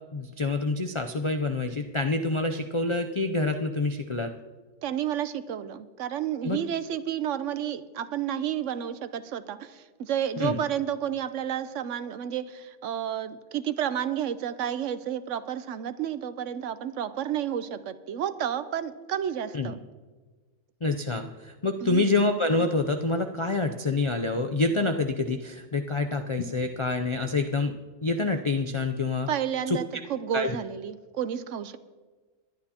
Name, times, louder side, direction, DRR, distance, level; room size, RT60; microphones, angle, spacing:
voice 1, 0.1-4.3 6.4-6.6 10.4-10.6 19.5-19.7 20.8-27.7 28.0-29.3 29.7-29.8 30.3-30.5, left 3 dB, 50° left, 5 dB, 0.3 m, -27 dB
voice 2, 4.8-19.8 21.8-22.2 29.3-31.8, right 9 dB, 75° right, 13 dB, 1.0 m, -31 dB
21.0 x 11.0 x 2.9 m, 1.3 s
omnidirectional pair, 1.3 m